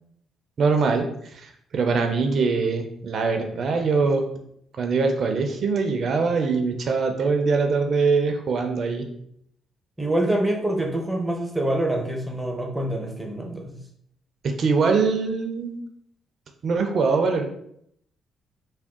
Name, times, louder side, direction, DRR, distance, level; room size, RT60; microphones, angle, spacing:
voice 1, 0.6-4.3 4.8-9.1 14.4-15.8 16.6-17.4, right 4 dB, 55° right, 4 dB, 0.6 m, -23 dB
voice 2, 10.0-13.8, right 1 dB, 5° right, 1 dB, 0.7 m, -26 dB
3.5 x 2.3 x 3.6 m, 0.71 s
cardioid pair, 90°, 0 cm